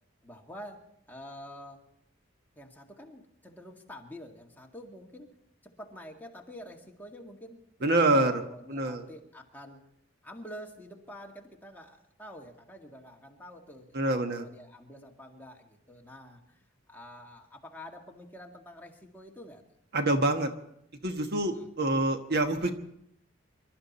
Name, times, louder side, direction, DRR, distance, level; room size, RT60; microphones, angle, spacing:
voice 1, 0.2-1.8 2.6-5.3 5.6-9.8 10.2-19.6 21.6-21.7, equal, 10° left, 0 dB, 1.9 m, -47 dB
voice 2, 7.8-8.4 8.7-9.0 13.9-14.5 19.9-20.5 21.0-22.7, right 2 dB, 55° right, 6 dB, 1.4 m, -26 dB
26.0 x 12.5 x 4.2 m, 0.76 s
head